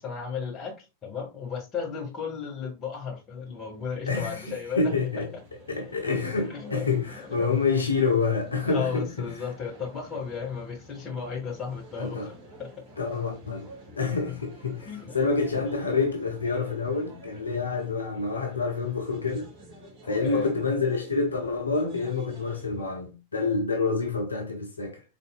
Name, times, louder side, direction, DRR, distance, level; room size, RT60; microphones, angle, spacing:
voice 1, 0.0-5.2 6.5-7.5 8.6-12.3 12.6-12.7 14.8-15.1 20.2-20.5, left 6 dB, 25° left, 1.8 m, -34 dB
sound 1, 3.2-22.9, right 1 dB, 35° right, 2.7 m, -49 dB
voice 2, 4.1-9.3 12.0-12.3 13.0-13.7 14.0-19.5 20.0-25.0, left 4 dB, 75° left, 0.7 m, -27 dB
4.3 x 3.9 x 2.3 m
figure-of-eight pair, 90°, 0 cm